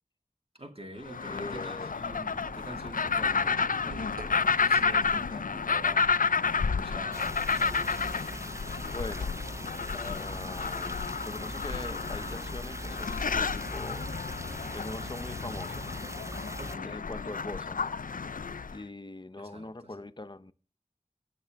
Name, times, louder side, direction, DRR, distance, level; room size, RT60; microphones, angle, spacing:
voice 1, 0.6-8.5 16.6-17.0 19.4-19.9, right 1 dB, 40° right, 2.0 m, -47 dB
sound 1, 1.0-18.8, left 5 dB, 75° left, 0.4 m, -31 dB
voice 2, 1.3-1.9 6.9-7.0 8.8-9.4 9.9-14.1 14.7-15.8 16.7-18.0 18.7-20.5, left 2 dB, 30° left, 0.6 m, -42 dB
sound 2, 2.3-8.1, right 3 dB, 90° right, 1.1 m, -48 dB
sound 3, 7.1-16.7, right 1 dB, 20° right, 0.5 m, -41 dB
17.0 x 6.8 x 3.5 m
wide cardioid pair, 40°, 14 cm